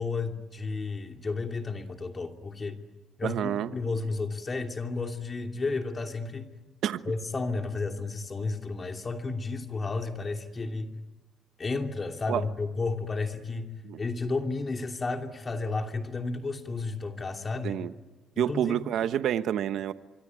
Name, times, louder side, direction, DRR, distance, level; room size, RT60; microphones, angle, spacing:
voice 1, 0.0-2.8 3.2-6.5 7.1-10.9 11.6-17.8 18.3-18.8, left 3 dB, 30° left, 4 dB, 2.7 m, -32 dB
voice 2, 3.2-3.7 6.8-7.0 12.3-12.4 13.8-14.0 17.6-17.9 18.4-19.9, right 10 dB, 70° right, 12 dB, 1.1 m, -28 dB
25.0 x 24.0 x 9.8 m, 1.1 s
cardioid pair, 90°, 0 cm